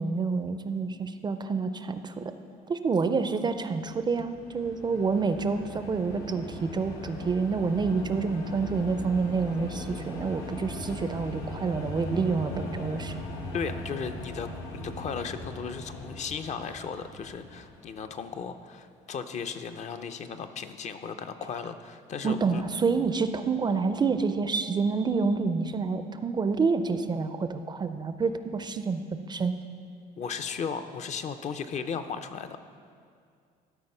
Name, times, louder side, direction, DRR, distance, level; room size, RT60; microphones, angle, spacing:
voice 1, 0.0-2.3 2.7-13.1 22.2-29.5, right 4 dB, 25° right, 10 dB, 0.4 m, -28 dB
sound 1, 3.8-18.3, left 1 dB, 80° left, 1.4 m, -39 dB
voice 2, 13.5-14.5 14.7-22.6 30.2-32.6, left 6 dB, 45° left, 9 dB, 0.5 m, -36 dB
12.5 x 4.3 x 5.4 m, 2.2 s
cardioid pair, 110°, 17 cm